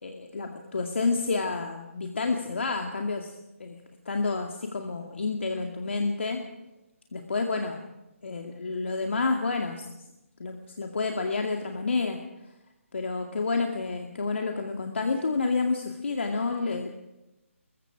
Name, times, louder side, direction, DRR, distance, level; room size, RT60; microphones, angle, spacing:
voice 1, 0.0-3.3 3.6-3.8 4.1-6.4 7.1-7.8 8.2-9.8 10.4-12.2 12.9-17.0, left 4 dB, 60° left, 3 dB, 2.2 m, -29 dB
24.5 x 22.0 x 4.9 m, 0.97 s
figure-of-eight pair, 150°, 8 cm